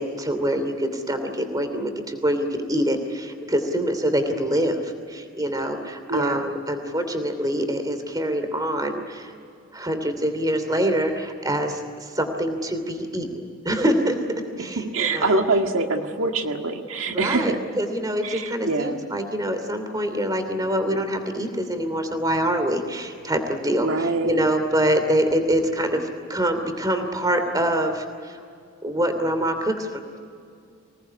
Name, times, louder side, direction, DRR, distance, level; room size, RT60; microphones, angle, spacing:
voice 1, 0.0-9.3 9.7-15.4 17.1-23.9 24.2-28.4 28.8-30.2, right 1 dB, 20° right, 7 dB, 2.8 m, -25 dB
voice 2, 6.1-6.5 14.8-17.6 18.2-19.0 23.8-24.5, right 3 dB, 90° right, 4 dB, 1.8 m, -24 dB
25.5 x 19.0 x 9.6 m, 2.3 s
head